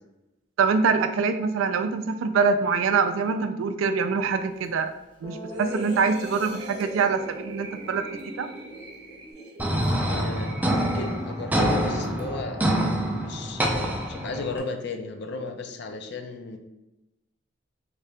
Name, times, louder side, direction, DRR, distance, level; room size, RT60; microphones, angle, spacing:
voice 1, 0.6-4.9 5.2-8.0 8.4-8.5, right 5 dB, 85° right, 9 dB, 0.3 m, -24 dB
Guitar, 4.6-4.7 5.2-9.3, equal, 25° left, 0.7 m, -42 dB
sound 1, 5.5-11.6 12.0-12.2, right 1 dB, 55° right, 0.7 m, -41 dB
sound 2, 9.6-14.6, right 1 dB, 10° right, 0.4 m, -26 dB
voice 2, 10.0-12.6 13.2-16.6, left 3 dB, 60° left, 5 dB, 0.5 m, -34 dB
3.3 x 2.8 x 3.3 m, 0.95 s
head